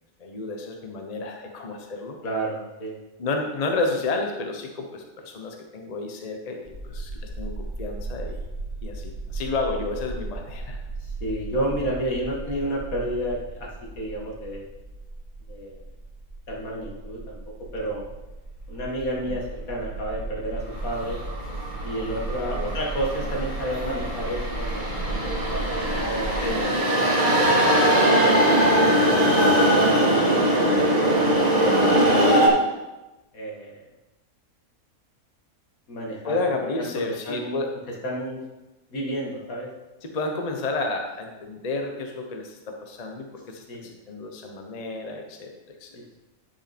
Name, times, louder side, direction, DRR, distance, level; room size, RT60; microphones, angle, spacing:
voice 1, 0.2-2.2 3.2-8.4 8.8-10.8 11.6-11.9 19.2-19.4 22.4-22.7 26.4-27.1 36.2-37.7 40.0-45.9, left 3 dB, 30° left, 3 dB, 0.9 m, -31 dB
voice 2, 2.2-3.0 11.0-13.7 14.0-14.6 15.5-15.8 16.5-17.4 17.7-18.0 18.7-21.2 21.8-26.3 27.0-30.5 31.2-32.2 33.3-33.8 35.9-36.4 36.8-36.9 37.3-37.6 38.0-38.4 38.9-39.7 43.7-43.9 45.9-46.2, right 1 dB, 75° left, -2 dB, 2.2 m, -31 dB
sound 1, 6.7-26.6, right 2 dB, 10° left, 2.2 m, -35 dB
sound 2, 20.8-32.5, right 1 dB, 30° right, 1.8 m, -21 dB
10.0 x 5.6 x 4.4 m, 1.1 s
omnidirectional pair, 1.5 m